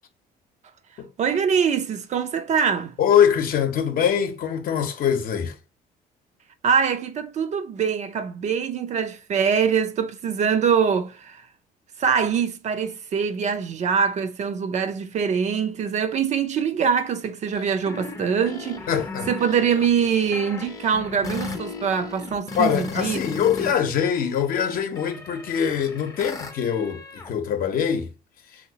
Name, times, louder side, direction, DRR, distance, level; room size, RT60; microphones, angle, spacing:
voice 1, 1.2-2.9 6.6-11.4 12.0-18.8 19.3-23.2 23.6-23.7, right 7 dB, 45° right, 0.5 m, -23 dB
voice 2, 3.0-5.6 18.9-19.3 22.6-28.1, left 8 dB, 60° left, 0.7 m, -23 dB
sound 1, 17.5-23.7 24.0-27.3, left 3 dB, 20° left, 0.6 m, -37 dB
3.2 x 2.8 x 2.7 m
cardioid pair, 110°, 17 cm